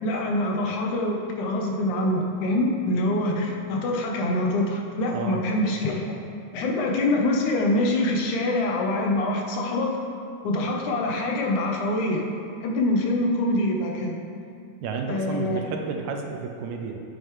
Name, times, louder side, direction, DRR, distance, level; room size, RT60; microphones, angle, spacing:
voice 1, 0.0-6.0 6.5-9.9 10.4-12.2 12.6-14.2 15.1-15.6, left 1 dB, 80° left, 1 dB, 2.3 m, -25 dB
voice 2, 14.8-17.0, right 5 dB, 80° right, 3 dB, 1.9 m, -31 dB
8.9 x 8.3 x 3.1 m, 2.5 s
omnidirectional pair, 3.5 m